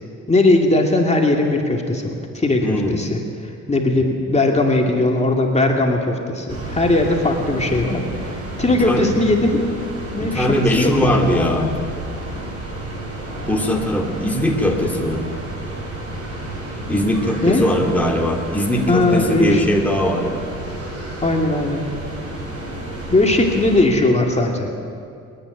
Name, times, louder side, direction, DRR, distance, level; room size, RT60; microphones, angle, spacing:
voice 1, 0.3-3.2 3.7-9.6 10.1-11.7 17.4-17.7 18.9-19.6 21.2-21.9 23.1-24.7, left 2 dB, 20° left, 1 dB, 2.5 m, -19 dB
voice 2, 2.6-3.1 8.7-9.1 10.2-11.7 13.5-15.2 16.9-20.4, equal, 5° left, 0 dB, 2.5 m, -20 dB
sound 1, 6.5-23.8, right 1 dB, 50° right, 7.3 m, -31 dB
29.5 x 10.0 x 9.8 m, 2.4 s
cardioid pair, 90°, 30 cm